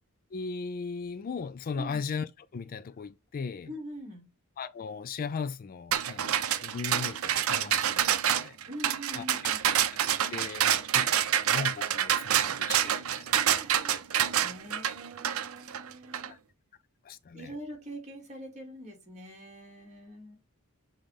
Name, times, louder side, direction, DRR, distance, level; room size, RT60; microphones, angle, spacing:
voice 1, 0.3-3.7 4.6-6.3 6.6-8.6 9.2-9.5 10.3-13.4 16.3-16.4 17.0-17.5, left 5 dB, 40° left, 0.4 m, -38 dB
voice 2, 1.7-2.0 3.7-4.3 8.7-9.6 13.3-13.9 14.4-16.3 17.3-20.4, equal, 35° right, 2.5 m, -44 dB
Sounds For Earthquakes - Metal, 5.9-16.3, right 10 dB, 75° right, 0.6 m, -27 dB
7.0 x 3.8 x 3.5 m
head